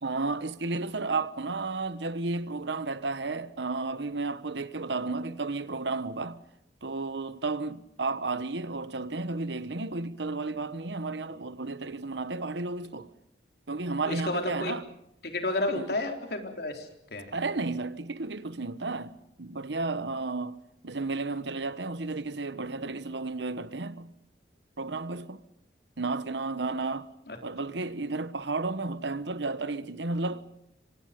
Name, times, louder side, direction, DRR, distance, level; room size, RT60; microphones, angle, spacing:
voice 1, 0.0-6.4 6.8-13.1 13.7-14.8 15.7-15.9 17.3-20.6 20.8-24.1 24.8-25.4 26.0-27.1 27.4-30.5, right 3 dB, 75° right, 1.2 m, -32 dB
voice 2, 14.1-14.7 15.2-17.3 27.3-27.4, left 2 dB, 60° left, 4.0 m, -31 dB
26.5 x 25.5 x 5.3 m
head